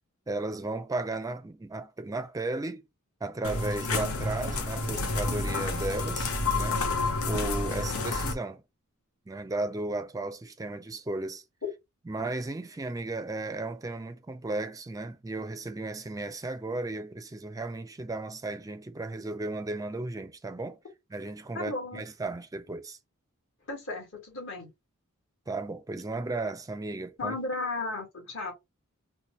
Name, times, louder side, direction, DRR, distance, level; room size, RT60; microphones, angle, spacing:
voice 1, 0.3-2.8 3.2-6.8 7.2-8.6 9.3-11.4 12.1-20.8 21.1-23.0 25.5-27.4, right 2 dB, 15° right, 0.4 m, -35 dB
sound 1, 3.4-8.3, left 2 dB, 75° left, 0.9 m, -29 dB
voice 2, 21.5-22.0 23.7-24.7 27.2-28.5, left 2 dB, 60° left, 1.9 m, -34 dB
4.2 x 2.1 x 3.1 m
head